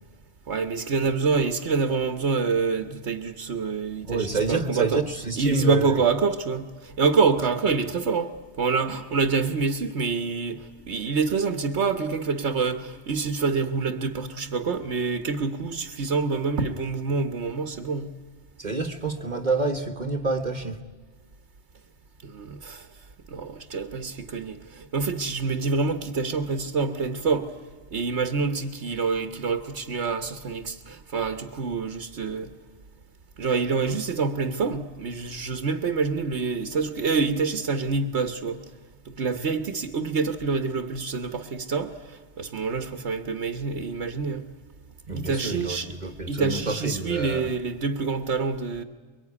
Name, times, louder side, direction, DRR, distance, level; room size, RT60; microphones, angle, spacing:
voice 1, 0.5-5.0 5.4-8.3 8.6-18.1 22.2-22.9 23.3-27.5 27.9-32.5 33.4-38.6 39.0-44.5 45.1-45.9 46.3-48.8, right 4 dB, 70° right, 1.5 m, -26 dB
voice 2, 4.0-6.0 18.6-20.8 45.1-47.5, right 3 dB, 40° right, 1.5 m, -28 dB
23.5 x 23.5 x 9.7 m
omnidirectional pair, 1.2 m